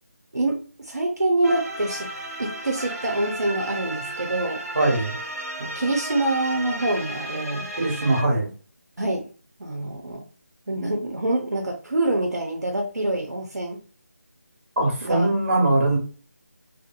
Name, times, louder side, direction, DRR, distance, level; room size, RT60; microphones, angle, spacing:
voice 1, 0.3-2.1 2.4-4.6 5.6-7.7 9.0-9.3 9.6-10.2 10.7-13.8 15.0-15.3, right 2 dB, 85° right, 1 dB, 0.6 m, -26 dB
sound 1, 1.4-8.2, right 1 dB, 65° right, 1.0 m, -34 dB
voice 2, 4.7-5.2 7.8-8.5 14.8-16.0, right 2 dB, 45° right, -1 dB, 1.3 m, -21 dB
2.8 x 2.5 x 2.4 m, 0.37 s
figure-of-eight pair, 160°, 9 cm